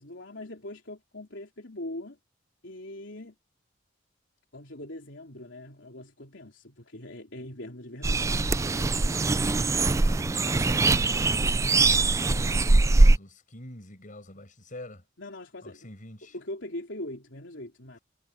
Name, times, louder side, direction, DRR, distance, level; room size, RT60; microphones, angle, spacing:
voice 1, 0.0-2.2 2.6-3.4 4.5-9.4 15.2-15.9 16.3-18.0, left 1 dB, 70° left, 3.6 m, -41 dB
sound 1, 8.0-13.2, right 3 dB, 15° right, 0.3 m, -22 dB
voice 2, 10.0-15.0 15.6-16.4, left 1 dB, 45° left, 7.0 m, -45 dB
head